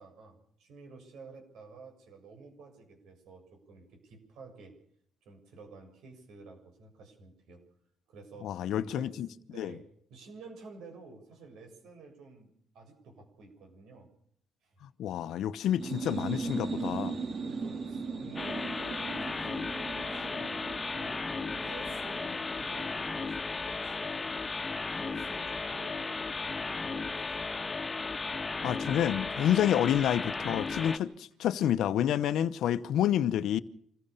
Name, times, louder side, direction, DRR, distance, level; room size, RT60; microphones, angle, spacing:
voice 1, 0.0-4.8 5.2-7.6 8.1-9.1 9.5-12.5 12.7-14.1 14.6-14.7 17.4-21.2 21.5-24.4 24.9-27.7, right 3 dB, 80° right, 7.2 m, -51 dB
voice 2, 8.4-9.3 9.6-9.8 15.0-17.1 28.6-33.6, left 10 dB, 80° left, 0.9 m, -28 dB
sound 1, 15.7-23.2, right 4 dB, 50° right, 3.4 m, -38 dB
sound 2, 18.4-31.0, left 3 dB, 25° left, 1.7 m, -35 dB
26.5 x 15.5 x 6.9 m
cardioid pair, 90°, 0 cm